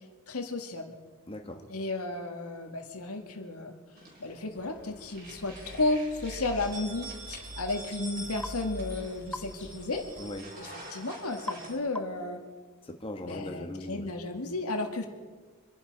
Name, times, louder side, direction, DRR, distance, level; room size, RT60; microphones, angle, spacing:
voice 1, 0.3-1.0 1.7-3.7 4.2-10.1 10.6-12.4 13.3-15.1, left 2 dB, 80° left, 4 dB, 1.8 m, -33 dB
voice 2, 1.3-1.6 10.2-10.5 12.8-14.1, left 1 dB, 25° left, 3 dB, 1.4 m, -39 dB
sound 1, 4.0-4.7 5.0-11.8, right 2 dB, 45° right, 4.3 m, -46 dB
sound 2, 4.6-10.4, left 1 dB, 50° left, 1.7 m, -46 dB
sound 3, 8.4-8.6 9.3-9.5 11.5-11.7 12.0-12.3, left 1 dB, 5° left, 0.4 m, -38 dB
25.5 x 11.0 x 4.7 m, 1.5 s
head